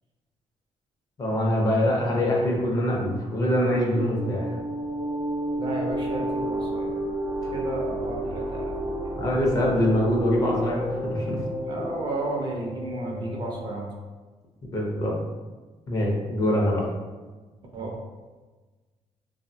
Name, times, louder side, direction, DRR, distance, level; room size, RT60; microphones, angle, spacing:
voice 1, 1.2-4.5 9.1-11.4 14.7-15.1 15.9-16.9, left 1 dB, 30° left, -2 dB, 0.5 m, -24 dB
sound 1, 3.4-13.6, equal, 90° right, 0.7 m, -31 dB
voice 2, 5.6-6.9 7.5-9.0 11.7-13.9 17.7-17.9, right 2 dB, 40° right, -1 dB, 0.4 m, -32 dB
3.0 x 2.0 x 2.5 m, 1.3 s
cardioid pair, 165°, 12 cm